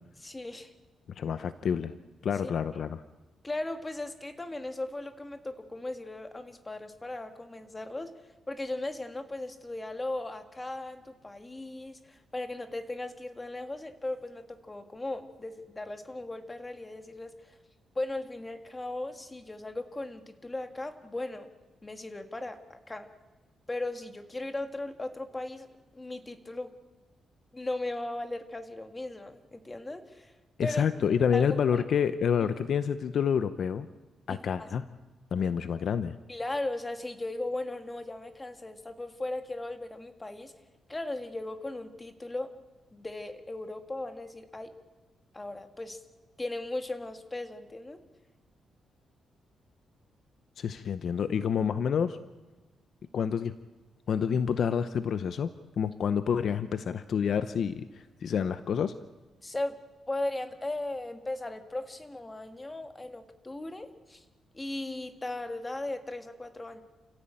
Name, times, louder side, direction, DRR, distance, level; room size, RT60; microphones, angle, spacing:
voice 1, 0.2-0.7 2.4-2.5 3.4-8.1 8.5-17.6 18.0-21.5 21.8-23.1 23.7-26.7 27.5-30.3 30.6-30.9 31.3-31.8 34.3-34.7 36.3-40.5 40.9-42.5 42.9-44.7 45.3-46.0 46.4-48.0 59.4-59.8 60.1-64.2 64.5-66.8, left 2 dB, 15° left, 7 dB, 1.8 m, -37 dB
voice 2, 1.2-1.9 2.2-3.0 30.6-33.9 34.3-34.9 35.3-36.2 50.6-52.2 53.1-53.5 54.1-55.5 55.8-58.9, left 7 dB, 55° left, 12 dB, 0.7 m, -28 dB
29.0 x 16.0 x 8.8 m, 1.2 s
wide cardioid pair, 155°, 0 cm